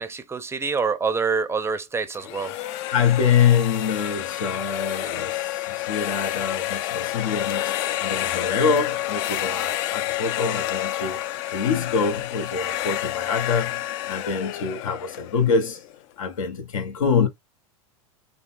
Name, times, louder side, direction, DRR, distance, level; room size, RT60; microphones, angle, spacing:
voice 1, 0.0-2.6, right 5 dB, 15° right, 0.5 m, -26 dB
sound 1, 2.1-16.0, left 14 dB, 60° left, 0.5 m, -29 dB
voice 2, 2.9-11.2 11.5-15.8 16.2-17.3, left 6 dB, 85° left, 1.1 m, -25 dB
3.8 x 2.2 x 2.5 m
hypercardioid pair, 105°, 17 cm